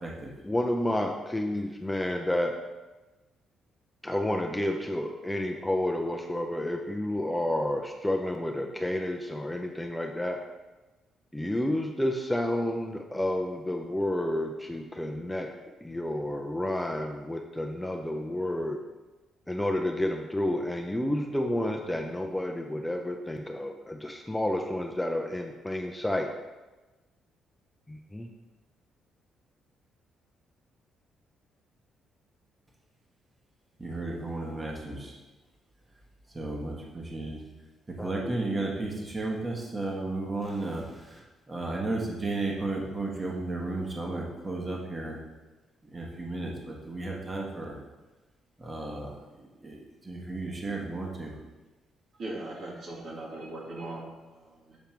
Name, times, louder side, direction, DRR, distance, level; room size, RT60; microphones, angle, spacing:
voice 1, 0.4-2.6 4.0-10.4 11.3-15.5 15.8-18.8 19.5-26.3 27.9-28.3 38.0-38.3, left 1 dB, 10° left, 2 dB, 0.5 m, -30 dB
voice 2, 33.8-35.1 36.3-37.4 37.9-40.8 41.5-45.2 45.9-47.7 48.6-49.1 49.6-49.8 50.1-51.3, right 2 dB, 25° right, -1 dB, 1.2 m, -33 dB
voice 3, 52.2-54.8, right 2 dB, 60° right, -4 dB, 1.9 m, -40 dB
7.1 x 3.5 x 4.4 m, 1.2 s
cardioid pair, 90°, 0 cm